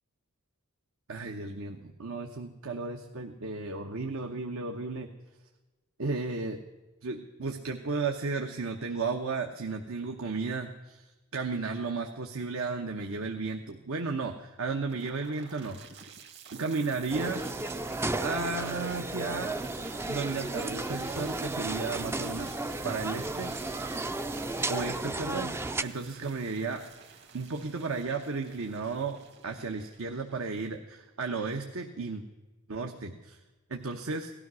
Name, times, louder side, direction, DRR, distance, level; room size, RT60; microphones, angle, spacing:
voice 1, 1.1-5.1 6.0-6.6 7.0-15.8 16.5-17.4 18.2-19.6 20.1-22.6 22.8-23.8 24.7-26.8 27.3-29.2 29.4-32.2 32.7-33.4 33.7-34.3, right 4 dB, 70° right, 3 dB, 1.0 m, -34 dB
sound 1, 14.9-30.9, right 7 dB, 50° right, 1.9 m, -49 dB
sound 2, 17.1-25.8, right 2 dB, 10° right, 0.4 m, -34 dB
18.0 x 12.5 x 6.2 m, 1.2 s
head